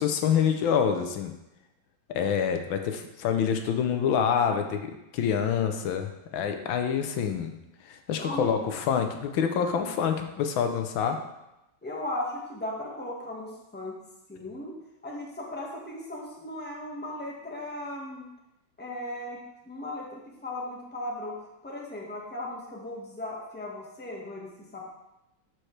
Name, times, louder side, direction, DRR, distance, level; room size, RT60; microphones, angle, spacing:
voice 1, 0.0-1.3 2.1-7.5 7.9-11.2, left 7 dB, 80° left, 6 dB, 1.5 m, -26 dB
voice 2, 8.1-8.6 11.8-14.0 14.3-14.7 15.0-18.2 18.8-19.4 19.6-21.4 21.6-24.8, left 1 dB, 5° left, -3 dB, 1.2 m, -37 dB
12.5 x 4.5 x 3.3 m, 0.92 s
omnidirectional pair, 2.2 m